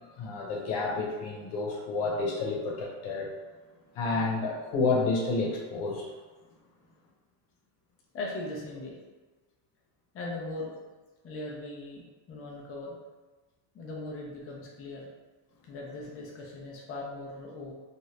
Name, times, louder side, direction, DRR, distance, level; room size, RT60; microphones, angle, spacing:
voice 1, 0.2-3.3 4.0-6.1, left 3 dB, 85° left, -1 dB, 0.9 m, -30 dB
voice 2, 8.1-9.0 10.1-10.8 11.2-13.0 13.7-15.1 15.7-17.7, left 2 dB, 30° left, -2 dB, 0.5 m, -39 dB
2.7 x 2.5 x 3.1 m, 1.2 s
cardioid pair, 155°, 47 cm